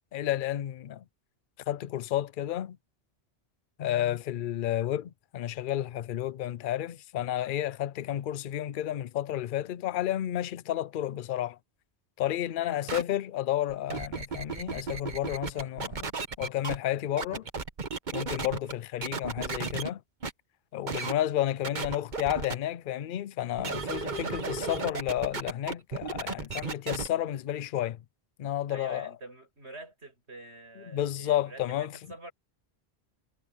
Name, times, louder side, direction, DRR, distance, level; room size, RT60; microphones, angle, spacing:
voice 1, 0.1-1.0 1.7-2.8 3.8-11.6 12.2-16.1 16.4-17.4 18.1-20.0 20.7-28.0 28.4-29.1 30.9-32.0, left 12 dB, 60° left, 0.7 m, -31 dB
voice 2, 12.6-13.0 28.7-32.3, right 2 dB, 85° right, 7.8 m, -47 dB
sound 1, 12.9-13.0 13.7-16.8 17.2-18.7 19.0-19.9 20.2-20.3 20.9-21.1 21.6-22.5 23.6-27.1, right 4 dB, 45° right, 1.3 m, -34 dB
omnidirectional pair, 1.1 m